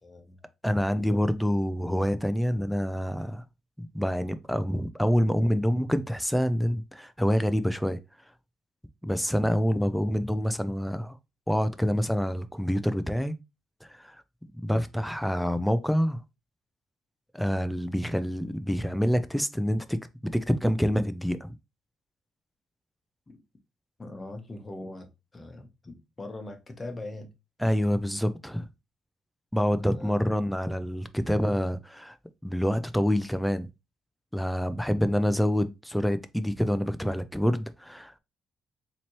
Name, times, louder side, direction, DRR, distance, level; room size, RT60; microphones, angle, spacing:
voice 1, 0.0-0.4 23.3-23.4 24.0-27.3 29.8-30.2, left 2 dB, 25° left, 1.0 m, -41 dB
voice 2, 0.6-3.4 3.8-8.0 9.0-11.2 11.5-13.3 13.8-14.2 14.6-16.2 17.3-21.4 27.6-28.7 29.5-32.2 32.4-33.7 34.3-38.1, equal, ahead, 0.4 m, -27 dB
4.1 x 2.9 x 3.0 m
cardioid pair, 90°, 0 cm